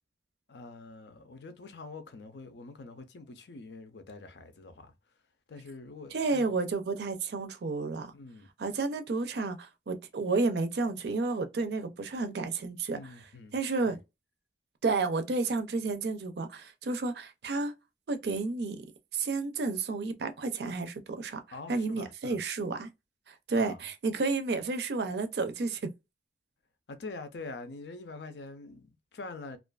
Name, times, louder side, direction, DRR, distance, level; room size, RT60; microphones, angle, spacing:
voice 1, 0.5-4.9 5.5-6.6 8.1-8.5 12.9-13.6 13.9-14.0 21.5-22.4 23.5-23.8 26.9-29.6, left 3 dB, 75° left, 0.5 m, -45 dB
voice 2, 6.1-8.1 8.6-13.1 13.5-14.0 14.8-17.7 18.1-18.9 19.1-21.4 21.7-22.9 23.3-25.9, right 3 dB, 65° right, 0.4 m, -31 dB
2.5 x 2.3 x 2.3 m
head